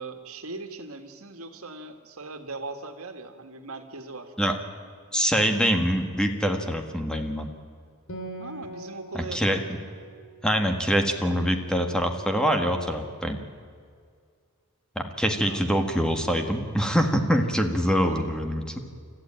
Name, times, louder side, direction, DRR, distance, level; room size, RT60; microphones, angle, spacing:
voice 1, 0.0-4.3 8.4-9.6 15.4-15.6 18.0-18.2, right 3 dB, 85° right, 7 dB, 1.9 m, -39 dB
voice 2, 5.1-7.5 9.1-9.6 10.4-13.4 14.9-18.8, equal, 5° left, 5 dB, 1.7 m, -24 dB
Acoustic guitar, 8.1-11.8, right 2 dB, 65° left, 3.9 m, -43 dB
29.5 x 14.0 x 9.0 m, 2.1 s
head